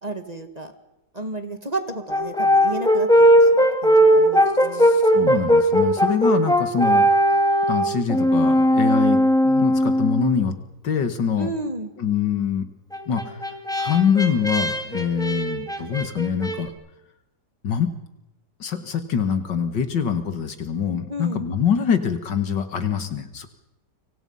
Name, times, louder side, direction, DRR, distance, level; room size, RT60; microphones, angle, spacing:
voice 1, 0.0-0.7 1.1-4.9 11.4-11.9 21.1-21.4, right 2 dB, 20° right, 7 dB, 1.9 m, -32 dB
Brass instrument, 2.1-10.4 12.9-16.6, equal, ahead, 2.1 m, -18 dB
voice 2, 4.7-7.1 7.7-9.2 9.4-10.5 10.8-11.5 12.0-12.7 13.1-13.4 13.8-16.7 17.6-17.9 18.6-23.5, left 7 dB, 75° left, 9 dB, 2.5 m, -24 dB
29.5 x 25.5 x 5.6 m, 0.93 s
omnidirectional pair, 1.9 m